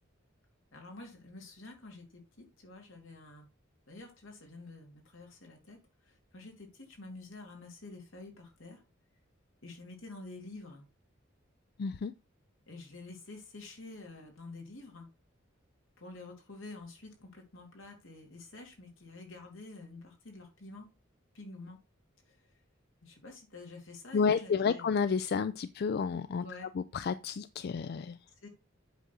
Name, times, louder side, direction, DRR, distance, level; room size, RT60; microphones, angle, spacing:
voice 1, 0.7-3.5 3.9-8.8 9.6-10.8 12.7-15.1 16.0-20.9 21.3-21.8 22.3-22.5 23.0-24.9 26.4-26.7 28.4-28.5, left 2 dB, 80° left, 2.8 m, -48 dB
voice 2, 11.8-12.1 24.1-26.4 26.7-28.2, left 5 dB, 55° left, 0.4 m, -31 dB
8.2 x 3.8 x 6.2 m
head